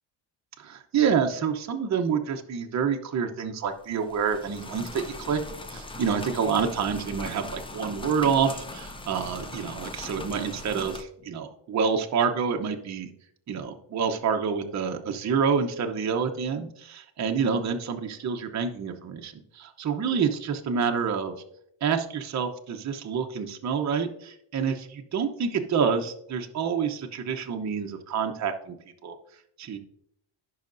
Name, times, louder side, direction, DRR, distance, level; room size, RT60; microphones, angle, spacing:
voice 1, 0.6-5.4 5.7-13.1 13.5-21.3 21.8-28.7 29.0-29.2 29.6-29.8, right 6 dB, 35° right, 4 dB, 0.8 m, -28 dB
sound 1, 3.8-11.0, left 2 dB, 10° left, 0.3 m, -40 dB
16.0 x 5.7 x 2.6 m, 0.71 s
cardioid pair, 155°, 49 cm